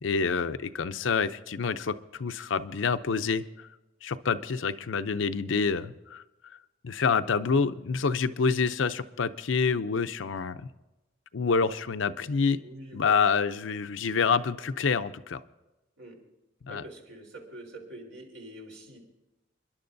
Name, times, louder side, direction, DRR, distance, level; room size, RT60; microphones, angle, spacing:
voice 1, 0.0-3.4 4.0-6.2 6.8-10.6 11.3-12.6 12.9-15.4 16.7-16.8, left 5 dB, 85° left, 12 dB, 0.6 m, -27 dB
voice 2, 12.6-13.4 16.0-16.2 16.7-19.0, right 1 dB, 85° right, 0 dB, 3.9 m, -45 dB
29.5 x 11.0 x 2.6 m, 1.0 s
head